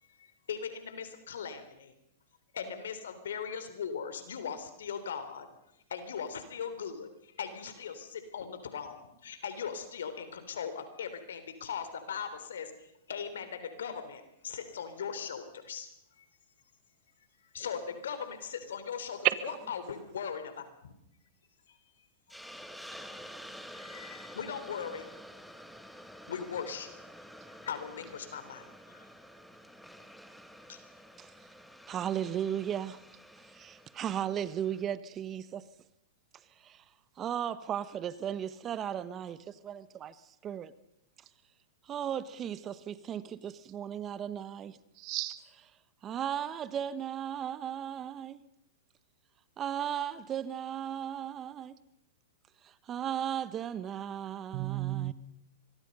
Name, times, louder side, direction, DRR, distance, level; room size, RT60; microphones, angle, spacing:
voice 1, 0.0-1.9 2.5-5.5 5.9-15.9 16.2-16.3 17.5-20.9 21.7-22.1 23.7-25.1 26.3-27.0 27.6-29.1 30.7-30.8, left 7 dB, 80° left, 3.6 m, -39 dB
voice 2, 19.2-19.6 45.0-45.4 54.5-55.1, right 16 dB, 45° right, 1.6 m, -31 dB
Hiss, 22.3-34.8, equal, ahead, 1.7 m, -50 dB
voice 3, 31.9-33.0 33.5-35.6 36.6-36.8 37.2-40.7 41.8-44.8 46.0-48.4 49.6-51.8 52.6-55.1, right 9 dB, 30° right, 1.0 m, -36 dB
25.0 x 22.0 x 5.5 m
hypercardioid pair, 120°, 0 cm